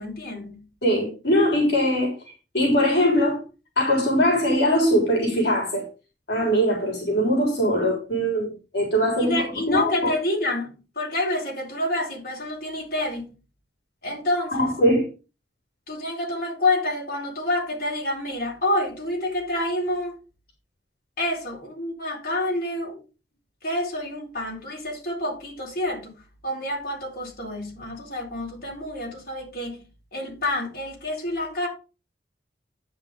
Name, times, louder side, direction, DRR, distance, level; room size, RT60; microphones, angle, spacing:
voice 1, 0.0-0.6 9.2-13.3 14.0-14.6 15.9-20.1 21.2-23.0 23.6-26.1 26.4-29.8 30.1-31.7, left 1 dB, 55° left, 4.2 m, -28 dB
voice 2, 0.8-2.1 2.5-3.4 3.8-5.8 6.3-9.4 9.7-10.1 14.5-15.1, equal, 70° left, 3.8 m, -21 dB
9.9 x 5.6 x 5.1 m
head